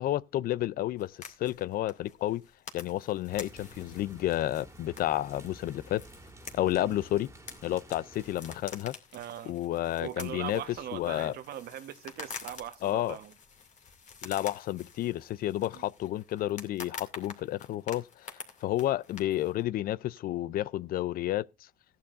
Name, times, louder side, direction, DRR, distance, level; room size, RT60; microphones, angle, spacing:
voice 1, 0.0-2.4 2.7-6.0 6.5-7.3 7.6-8.9 9.5-10.6 10.9-11.3 12.8-13.2 14.2-21.5, left 14 dB, 60° left, 0.4 m, -31 dB
sound 1, 1.0-19.6, left 5 dB, 45° left, 2.5 m, -48 dB
sound 2, 3.3-8.6, right 1 dB, 15° right, 2.1 m, -52 dB
voice 2, 9.1-9.6 10.0-13.3 15.7-15.8, right 11 dB, 65° right, 1.2 m, -40 dB
15.5 x 10.5 x 2.5 m
cardioid pair, 110°, 17 cm